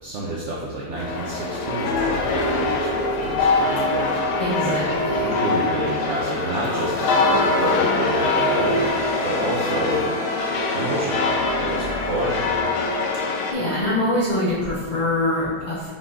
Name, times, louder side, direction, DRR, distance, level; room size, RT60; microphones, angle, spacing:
voice 1, 0.0-2.9 3.2-4.2 4.6-4.9 5.2-8.9 9.2-10.1 10.7-12.4, right 2 dB, 65° right, -4 dB, 0.8 m, -29 dB
sound 1, 1.0-13.5, left 3 dB, 90° left, 1.2 m, -23 dB
sound 2, 1.9-12.6, equal, 20° right, 0.8 m, -35 dB
voice 2, 4.4-5.3 13.5-15.9, left 1 dB, 35° left, -10 dB, 0.8 m, -24 dB
5.3 x 2.5 x 3.4 m, 1.4 s
omnidirectional pair, 1.7 m